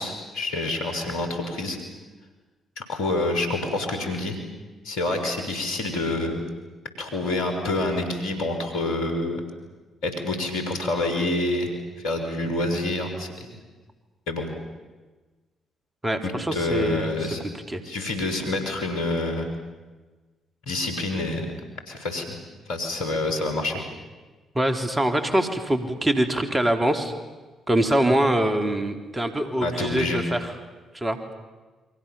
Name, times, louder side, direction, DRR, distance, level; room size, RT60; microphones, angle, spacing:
voice 1, 0.0-1.8 2.8-4.4 4.8-6.4 7.0-9.4 10.0-11.7 12.0-13.6 14.3-14.5 16.2-17.4 17.8-19.5 20.7-21.5 21.9-22.4 22.7-23.8 29.6-30.2, left 2 dB, 75° left, 5 dB, 5.3 m, -27 dB
voice 2, 16.0-17.8 24.5-27.1 27.7-30.5 30.9-31.2, right 1 dB, 20° right, 7 dB, 3.8 m, -24 dB
30.0 x 24.0 x 7.3 m, 1.3 s
hypercardioid pair, 45°, 0 cm